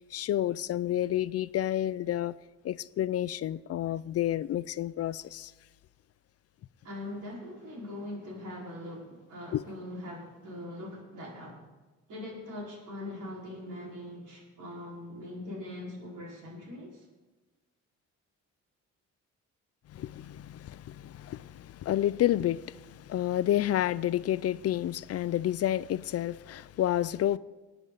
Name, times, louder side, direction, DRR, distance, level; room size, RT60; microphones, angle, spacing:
voice 1, 0.0-2.3 2.6-5.5 9.5-9.6 19.9-27.4, left 12 dB, 55° left, 0.4 m, -30 dB
voice 2, 6.8-11.6 12.1-17.0, left 1 dB, 80° right, 4.8 m, -41 dB
20.0 x 9.2 x 4.0 m
cardioid pair, 90°, 30 cm